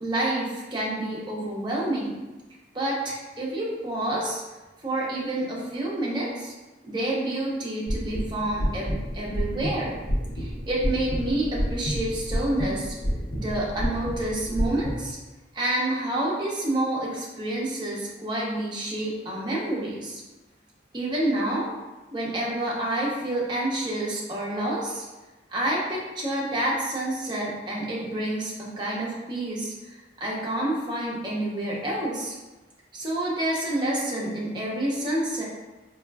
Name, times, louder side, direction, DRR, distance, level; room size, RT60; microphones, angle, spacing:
voice 1, 0.0-2.2 2.7-4.4 4.8-6.5 6.8-10.0 10.3-13.0 13.3-15.2 15.5-20.2 20.9-21.7 22.1-25.0 25.5-32.3 32.9-35.4, right 1 dB, 25° right, -4 dB, 0.6 m, -28 dB
sound 1, 7.9-14.9, equal, 70° left, 0.7 m, -30 dB
3.6 x 2.3 x 2.2 m, 1.1 s
head